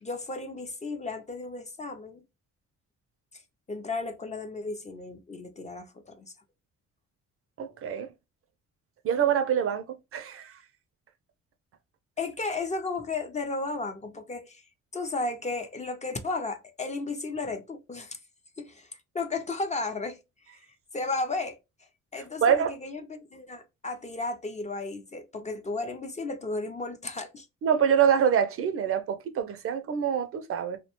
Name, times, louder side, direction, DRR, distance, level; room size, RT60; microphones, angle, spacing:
voice 1, 0.0-2.2 3.7-6.3 12.2-14.6 14.9-18.2 18.6-18.9 19.1-20.2 20.9-21.6 22.1-27.5, left 3 dB, 25° left, 0.4 m, -34 dB
voice 2, 7.6-8.1 9.0-9.9 10.1-10.6 22.4-22.7 27.6-30.8, right 8 dB, 50° right, 0.4 m, -25 dB
2.6 x 2.1 x 2.8 m
cardioid pair, 90°, 30 cm